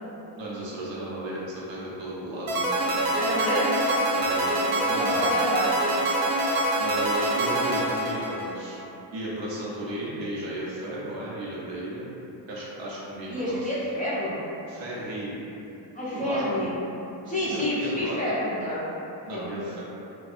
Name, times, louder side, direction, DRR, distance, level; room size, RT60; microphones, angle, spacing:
voice 1, 0.4-3.2 4.2-5.5 6.8-8.8 9.1-12.1 12.5-13.7 14.7-15.3 16.1-16.7 17.2-18.2 19.2-19.8, right 1 dB, 75° right, -6 dB, 0.8 m, -34 dB
sound 1, 2.5-8.8, right 1 dB, 55° right, 0.5 m, -25 dB
voice 2, 2.9-3.9 4.7-5.7 13.3-14.3 15.9-16.7 17.3-18.8 19.3-19.5, equal, 20° left, -10 dB, 0.4 m, -29 dB
2.5 x 2.2 x 2.4 m, 2.9 s
cardioid pair, 130°, 45 cm